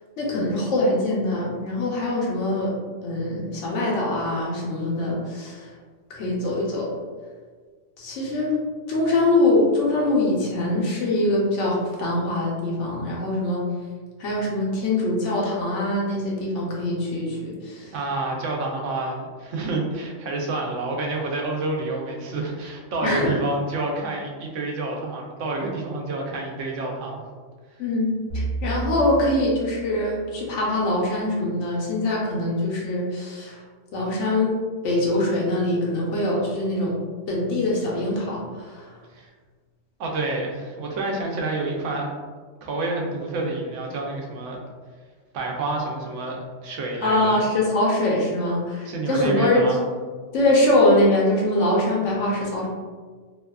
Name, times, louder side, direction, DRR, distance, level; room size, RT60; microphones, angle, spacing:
voice 1, 0.2-2.7 3.0-5.7 6.1-7.0 8.0-8.6 8.9-13.6 14.2-17.9 23.0-23.3 27.8-28.1 28.3-33.6 33.9-37.0 37.3-38.9 47.0-49.7 50.3-52.7, left 1 dB, 80° left, -3 dB, 1.0 m, -23 dB
voice 2, 17.9-27.2 39.1-39.3 40.0-42.1 42.6-44.6 45.3-47.4 48.8-49.8, right 2 dB, 80° right, 0 dB, 0.9 m, -28 dB
sound 1, 28.3-30.8, right 2 dB, 50° right, 1.1 m, -32 dB
2.7 x 2.3 x 2.2 m, 1.5 s
omnidirectional pair, 1.3 m